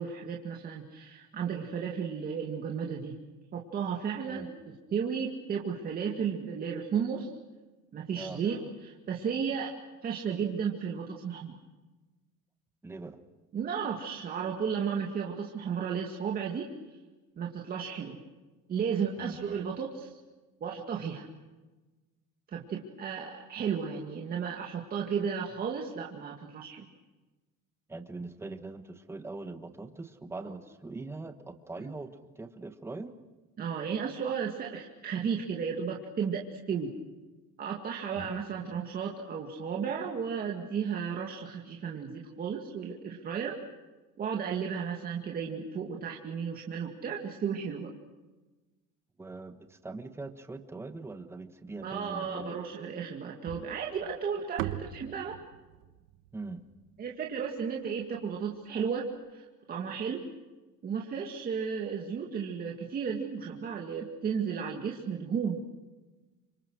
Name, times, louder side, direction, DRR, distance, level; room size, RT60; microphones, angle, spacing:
voice 1, 0.0-3.2 3.5-4.5 4.9-7.3 7.9-9.7 10.0-11.5 13.5-16.7 17.4-18.2 18.7-20.1 20.6-21.3 22.5-26.9 30.4-30.5 31.8-31.9 33.6-36.9 37.6-43.6 44.2-47.9 51.8-55.3 57.0-59.0 59.3-60.2 60.8-65.6, right 6 dB, 25° right, 0 dB, 2.2 m, -34 dB
voice 2, 12.8-13.2 19.2-19.4 27.9-33.1 38.2-38.3 49.2-52.6 56.3-56.6, right 3 dB, 10° right, 8 dB, 1.4 m, -42 dB
sound 1, 53.5-57.8, right 13 dB, 70° right, 1.4 m, -41 dB
28.5 x 26.0 x 6.3 m, 1.2 s
cardioid pair, 180°, 33 cm